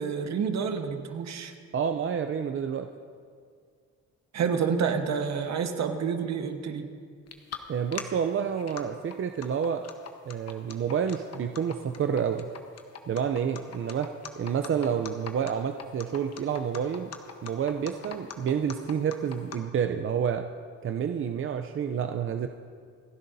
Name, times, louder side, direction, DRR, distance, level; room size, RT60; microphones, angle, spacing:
voice 1, 0.0-1.5 4.3-6.9, right 6 dB, 65° right, 6 dB, 1.3 m, -29 dB
voice 2, 1.7-2.9 7.7-9.8 10.3-12.5 13.1-14.1 14.3-17.1 17.4-20.4 20.8-22.5, right 7 dB, 45° right, 6 dB, 0.6 m, -29 dB
sound 1, 7.3-7.6 7.9-8.0 8.5-8.8 9.1-19.6, left 7 dB, 55° left, 1.2 m, -40 dB
28.0 x 10.5 x 2.7 m, 2.1 s
cardioid pair, 90°, 30 cm